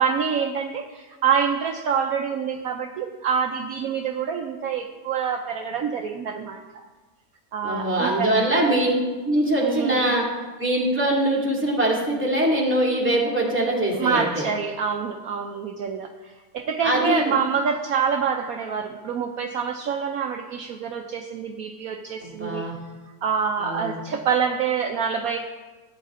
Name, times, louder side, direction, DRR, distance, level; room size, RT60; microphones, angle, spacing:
voice 1, 0.0-6.6 7.5-8.4 9.6-10.0 14.0-22.6 23.2-25.4, right 6 dB, 65° right, 4 dB, 1.0 m, -26 dB
voice 2, 7.6-8.9 9.2-10.2 10.6-14.4 16.8-17.3 22.2-22.8 23.6-24.0, right 1 dB, 5° right, -4 dB, 2.2 m, -22 dB
14.5 x 9.0 x 3.7 m, 1.3 s
omnidirectional pair, 1.8 m